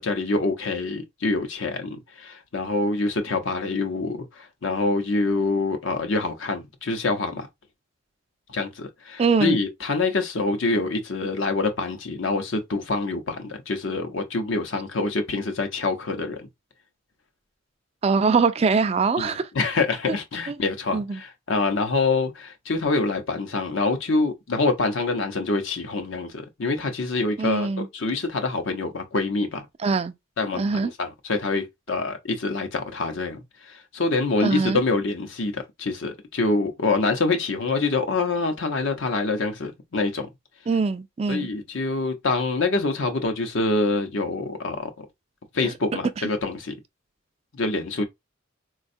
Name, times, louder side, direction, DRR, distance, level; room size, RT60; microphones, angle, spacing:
voice 1, 0.0-7.5 8.5-16.4 19.2-27.7 27.9-29.7 30.4-40.3 41.3-44.9 45.5-46.7 47.5-48.0, left 3 dB, 65° left, 0.7 m, -26 dB
voice 2, 9.2-9.6 18.0-19.4 20.5-20.6 20.9-21.2 27.4-27.9 29.8-30.1 30.6-30.9 34.4-34.8 40.7-41.5 45.6-45.7, right 4 dB, 30° right, 0.3 m, -22 dB
4.1 x 2.3 x 2.6 m
head